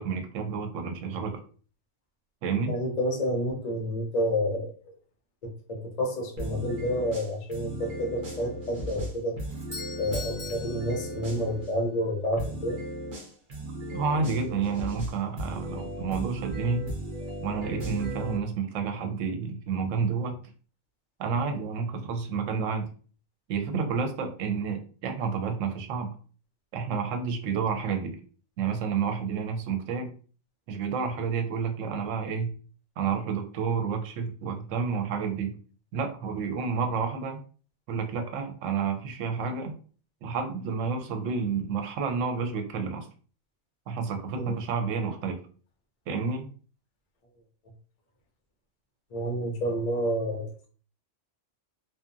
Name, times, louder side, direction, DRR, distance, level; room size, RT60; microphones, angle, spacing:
voice 1, 0.0-1.4 2.4-2.8 13.9-16.9 17.4-20.4 21.2-22.9 23.5-26.2 26.7-28.2 28.6-30.1 30.7-32.5 33.0-35.6 35.9-37.4 37.9-39.8 40.2-43.1 43.9-45.4 46.1-46.5, right 5 dB, 80° right, 5 dB, 0.9 m, -30 dB
voice 2, 2.7-5.0 5.4-9.4 9.9-12.8 44.3-44.6 49.1-50.7, equal, 50° left, 2 dB, 0.5 m, -29 dB
sound 1, 6.4-11.7 12.4-18.4, right 1 dB, 50° right, 0.8 m, -36 dB
Doorbell, 9.5-11.7, left 3 dB, 5° left, 0.7 m, -42 dB
2.7 x 2.3 x 2.4 m, 0.41 s
omnidirectional pair, 1.3 m